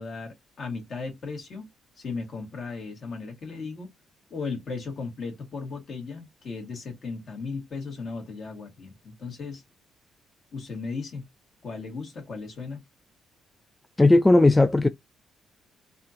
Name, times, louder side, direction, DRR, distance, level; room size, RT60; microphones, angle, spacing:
voice 1, 0.0-1.7 2.0-3.9 4.3-9.6 10.5-11.3 11.6-12.8, left 4 dB, 55° left, 1.9 m, -36 dB
voice 2, 14.0-14.9, left 2 dB, 15° left, 0.3 m, -17 dB
4.1 x 2.6 x 2.8 m
cardioid pair, 90°, 0 cm